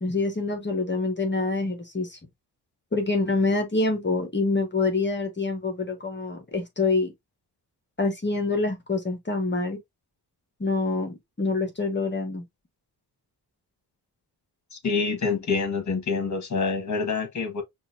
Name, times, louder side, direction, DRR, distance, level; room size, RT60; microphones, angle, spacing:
voice 1, 0.0-2.2 2.9-7.1 8.0-9.8 10.6-12.4, left 3 dB, 30° left, 1.3 m, -26 dB
voice 2, 14.7-17.6, left 4 dB, 45° left, 1.7 m, -26 dB
5.5 x 2.6 x 2.6 m
cardioid pair, 65°, 39 cm